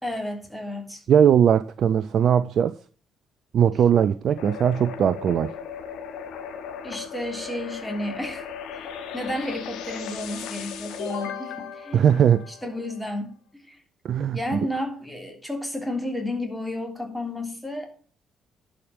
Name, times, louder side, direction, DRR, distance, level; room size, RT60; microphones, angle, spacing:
voice 1, 0.0-1.0 6.8-8.5 8.7-13.4 13.6-13.8 14.3-17.9, left 1 dB, 5° left, 3.2 m, -32 dB
voice 2, 1.1-2.8 3.5-5.5 11.9-12.4 14.0-14.7, right 8 dB, 55° right, 0.4 m, -20 dB
sound 1, 4.4-13.0, left 7 dB, 65° left, 1.4 m, -37 dB
11.0 x 5.1 x 7.4 m
figure-of-eight pair, 45°, 0 cm